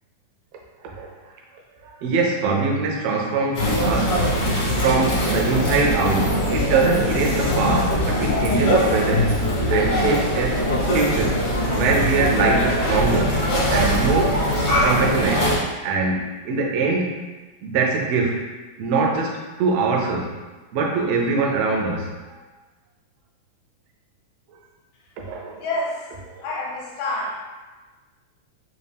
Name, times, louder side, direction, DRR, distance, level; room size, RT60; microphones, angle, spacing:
voice 1, 1.8-4.2 4.8-9.3 9.7-10.6 10.9-13.4 13.7-14.4 14.8-15.5 15.8-17.1 17.6-18.5 18.8-20.3 20.7-22.4 25.2-25.6 26.4-26.5, right 4 dB, 75° right, -1 dB, 1.5 m, -23 dB
sound 1, 3.5-15.6, equal, 60° left, 1.0 m, -21 dB
voice 2, 25.6-26.0 26.4-27.4, left 2 dB, 75° left, -2 dB, 2.0 m, -27 dB
5.0 x 2.4 x 3.4 m, 1.3 s
omnidirectional pair, 3.5 m